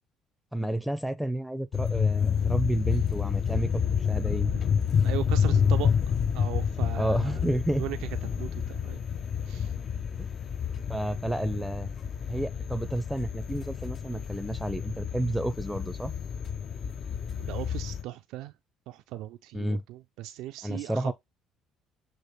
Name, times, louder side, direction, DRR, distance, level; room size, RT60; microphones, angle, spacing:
voice 1, 0.5-3.7 4.1-4.6 7.0-7.8 10.2-10.3 10.9-11.9 12.3-16.1 19.5-19.8 20.6-21.1, right 1 dB, ahead, 0.6 m, -30 dB
sound 1, 1.7-18.0, left 7 dB, 45° left, 0.6 m, -29 dB
voice 2, 5.0-5.9 6.3-7.5 7.8-8.0 8.4-9.0 9.5-9.7 17.4-18.5 18.9-21.1, right 15 dB, 75° right, 0.4 m, -37 dB
6.3 x 2.6 x 3.1 m
supercardioid pair, 70°, 0 cm